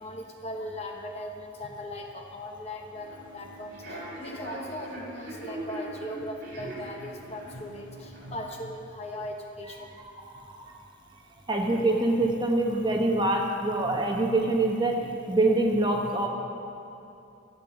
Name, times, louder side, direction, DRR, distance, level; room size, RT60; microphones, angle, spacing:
voice 1, 0.0-10.0, left 1 dB, 30° left, 2 dB, 1.0 m, -39 dB
Human voice / Subway metro underground, 2.9-8.4, right 1 dB, 45° right, 3.4 m, -41 dB
voice 2, 10.0-10.8 11.5-16.3, right 2 dB, 20° right, 0 dB, 1.2 m, -25 dB
13.0 x 7.9 x 7.3 m, 2.7 s
head